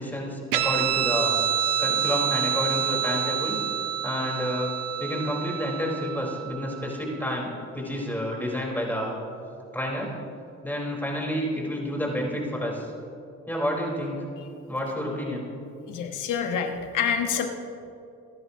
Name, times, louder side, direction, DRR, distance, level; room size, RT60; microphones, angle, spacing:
voice 1, 0.0-1.4 1.8-3.6 4.0-4.7 5.0-9.2 9.7-10.1 10.6-12.9 13.5-14.2 14.7-15.4, equal, 5° left, -3 dB, 3.9 m, -29 dB
Guitar, 0.5-7.4, right 10 dB, 90° right, 0.7 m, -28 dB
voice 2, 15.9-17.5, left 7 dB, 85° left, 5 dB, 1.3 m, -27 dB
25.5 x 11.0 x 2.8 m, 2.6 s
cardioid pair, 90°, 30 cm